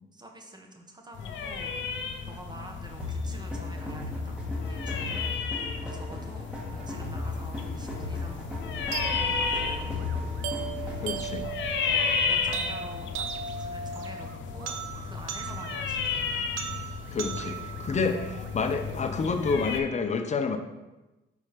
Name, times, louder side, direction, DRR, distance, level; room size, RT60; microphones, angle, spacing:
voice 1, 0.1-1.8 2.3-8.5 9.0-9.9 10.8-11.3 11.8-14.8 15.0-16.3 17.8-18.0, right 1 dB, 20° right, 2 dB, 1.1 m, -47 dB
sound 1, 1.2-19.8, left 6 dB, 70° left, 0.7 m, -33 dB
sound 2, 3.0-11.4, left 3 dB, 5° right, 1.5 m, -36 dB
sound 3, 8.9-18.9, right 6 dB, 80° right, 0.6 m, -37 dB
voice 2, 11.0-11.5 17.1-20.6, left 4 dB, 35° left, 7 dB, 0.7 m, -29 dB
4.9 x 4.2 x 5.1 m, 1.1 s
cardioid pair, 90°, 20 cm